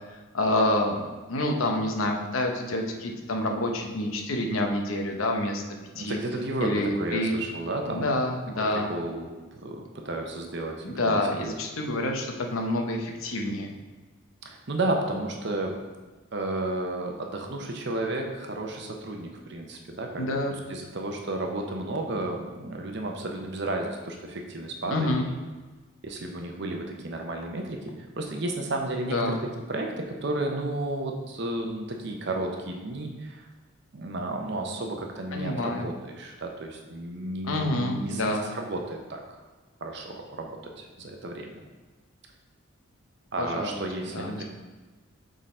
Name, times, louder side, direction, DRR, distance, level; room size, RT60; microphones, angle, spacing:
voice 1, 0.1-1.0 1.3-5.6 6.0-6.2 6.6-7.3 7.9-8.9 10.8-13.7 20.2-20.5 24.9-25.3 29.0-29.4 35.3-35.9 37.4-38.5 43.4-43.8 44.1-44.4, left 1 dB, 80° left, 2 dB, 0.8 m, -28 dB
voice 2, 5.9-8.2 8.7-11.5 14.4-15.8 16.3-20.4 20.7-25.4 26.0-29.4 29.7-33.5 33.9-39.4 39.8-41.5 43.3-44.4, right 2 dB, 55° right, 2 dB, 0.8 m, -32 dB
6.4 x 3.9 x 4.3 m, 1.3 s
head